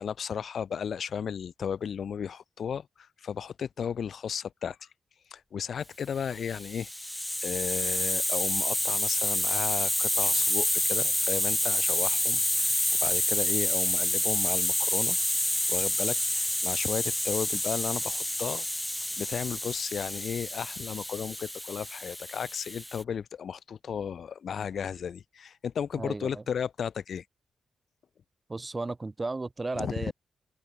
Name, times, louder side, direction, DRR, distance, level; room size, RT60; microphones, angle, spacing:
voice 1, 0.0-4.8 5.3-6.9 7.4-15.2 15.7-18.7 19.2-27.2 29.7-30.1, left 7 dB, 60° left, 3.0 m, -34 dB
Hiss, 6.4-23.0, left 1 dB, 5° left, 1.2 m, -28 dB
voice 2, 25.9-26.4 28.5-30.1, right 3 dB, 20° right, 2.6 m, -34 dB
open air
wide cardioid pair, 150°, 0 cm